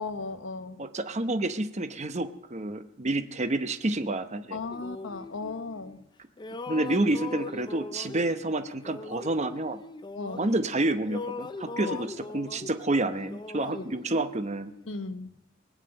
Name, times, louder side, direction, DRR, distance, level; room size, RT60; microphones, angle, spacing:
voice 1, 0.0-0.8 4.5-6.1 10.1-10.5 11.9-12.0 13.7-13.8 14.9-15.4, left 3 dB, 75° left, 10 dB, 1.0 m, -36 dB
voice 2, 0.8-4.6 6.7-9.8 10.4-14.7, right 2 dB, 35° right, 9 dB, 0.8 m, -29 dB
sound 1, 4.7-6.1 6.4-10.8 11.0-14.9, left 3 dB, 25° left, 0.5 m, -41 dB
20.0 x 7.5 x 8.7 m, 0.86 s
head